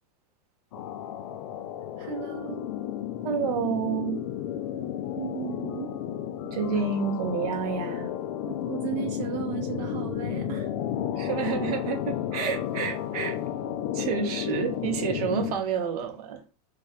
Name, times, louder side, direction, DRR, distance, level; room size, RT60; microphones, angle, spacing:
sound 1, 0.7-15.6, left 10 dB, 50° left, 0.4 m, -32 dB
voice 1, 2.0-2.6 5.2-5.9 8.4-10.7 11.1-11.2, right 10 dB, 85° right, 0.5 m, -35 dB
voice 2, 3.2-4.2 6.5-8.1 11.2-13.4 13.9-16.4, right 6 dB, 65° right, 0.9 m, -29 dB
2.5 x 2.2 x 4.0 m
supercardioid pair, 165°, 21 cm